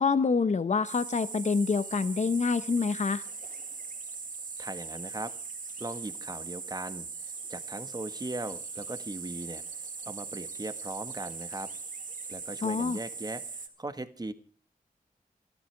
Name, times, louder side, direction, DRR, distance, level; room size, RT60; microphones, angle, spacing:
voice 1, 0.0-3.2 12.6-13.0, left 4 dB, 55° left, 13 dB, 0.9 m, -26 dB
sound 1, 0.8-13.7, right 4 dB, 65° right, 3.0 m, -40 dB
voice 2, 4.6-5.3 5.8-7.1 7.5-11.7 12.3-14.3, right 2 dB, 25° right, 10 dB, 1.5 m, -39 dB
28.0 x 12.5 x 3.4 m, 0.39 s
wide cardioid pair, 95°, 15 cm